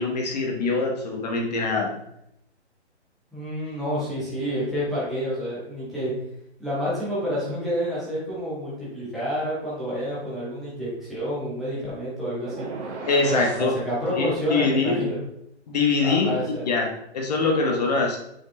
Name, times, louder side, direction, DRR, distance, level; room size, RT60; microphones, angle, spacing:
voice 1, 0.0-1.9 13.1-13.8 14.1-15.1 15.7-16.3 16.6-18.2, left 4 dB, 35° left, 1 dB, 1.2 m, -23 dB
voice 2, 3.3-6.1 6.6-12.7 13.3-15.2 16.0-16.6, equal, ahead, -10 dB, 0.3 m, -29 dB
sound 1, 12.5-13.7, right 3 dB, 85° right, 1.8 m, -35 dB
7.8 x 4.7 x 3.2 m, 0.78 s
hypercardioid pair, 165°, 35 cm